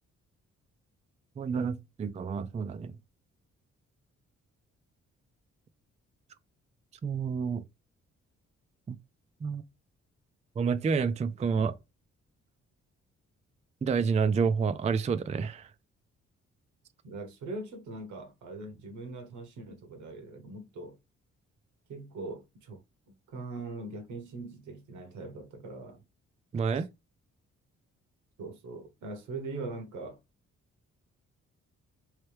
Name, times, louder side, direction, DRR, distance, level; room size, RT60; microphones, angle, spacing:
voice 1, 1.4-2.9 7.0-7.6 8.9-9.0 9.4-9.6 10.6-11.7 13.8-15.7 26.5-26.9, right 5 dB, 25° right, 0.4 m, -29 dB
voice 2, 17.0-21.0 21.9-22.8 23.1-26.0 26.7-26.9 28.4-30.2, right 3 dB, 80° right, 1.0 m, -41 dB
3.2 x 3.1 x 3.2 m
cardioid pair, 65°, 29 cm